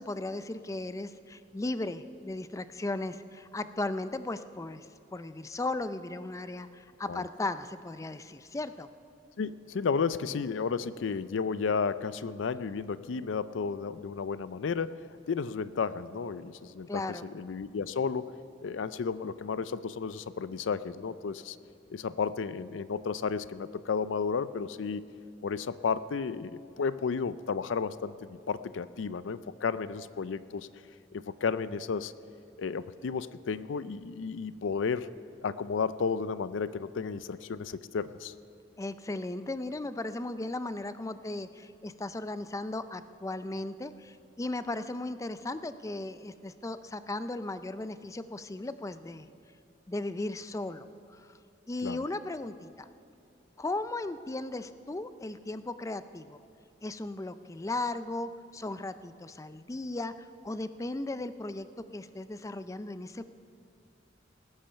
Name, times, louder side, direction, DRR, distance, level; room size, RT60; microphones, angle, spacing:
voice 1, 0.0-8.9 16.9-17.3 38.8-49.3 49.9-50.8 51.1-51.3 51.7-52.9 53.6-56.4 56.8-61.7 61.9-63.2, left 2 dB, 15° left, 12 dB, 0.4 m, -36 dB
voice 2, 9.4-21.6 21.9-25.0 25.4-30.7 31.1-32.1 32.6-35.1 35.4-38.3 51.8-52.0, left 5 dB, 90° left, 15 dB, 0.4 m, -33 dB
19.5 x 8.8 x 5.6 m, 2.7 s
head